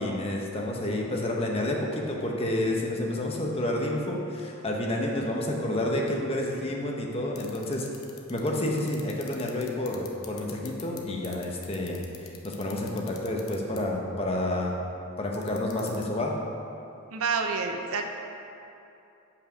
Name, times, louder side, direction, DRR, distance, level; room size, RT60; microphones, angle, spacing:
voice 1, 0.0-7.9 8.3-14.7 15.2-16.3, left 1 dB, 25° left, -1 dB, 0.8 m, -29 dB
sound 1, 7.4-11.0 11.2-13.8 15.3-16.0, left 13 dB, 75° left, 0.8 m, -43 dB
voice 2, 17.1-18.0, right 4 dB, 80° right, 4 dB, 0.7 m, -28 dB
7.3 x 5.7 x 5.0 m, 2.7 s
head